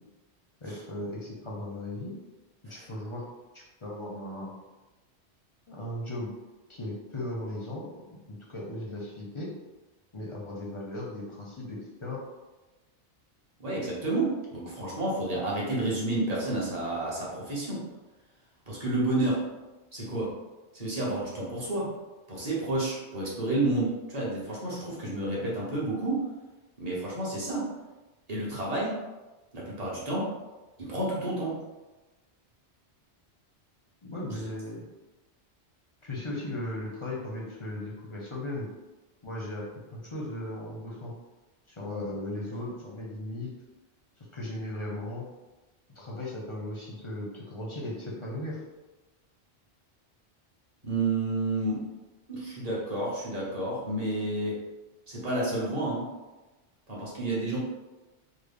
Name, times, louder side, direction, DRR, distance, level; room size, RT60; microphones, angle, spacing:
voice 1, 0.6-2.1 2.6-3.2 3.5-4.5 5.7-6.3 6.7-9.5 10.1-12.2 34.0-34.8 36.0-38.7 39.2-39.6 39.9-41.1 41.7-43.5 44.3-45.3 46.0-48.6, left 1 dB, 40° left, -4 dB, 0.5 m, -37 dB
voice 2, 13.6-17.8 18.7-19.4 19.9-20.3 20.7-21.9 22.3-26.2 26.8-27.7 28.3-29.0 29.5-30.3 30.8-31.6 34.3-34.4 50.8-51.8 52.3-54.6 55.1-56.1 56.9-57.6, right 2 dB, 40° right, -6 dB, 1.0 m, -30 dB
3.4 x 2.1 x 3.4 m, 1.1 s
omnidirectional pair, 1.1 m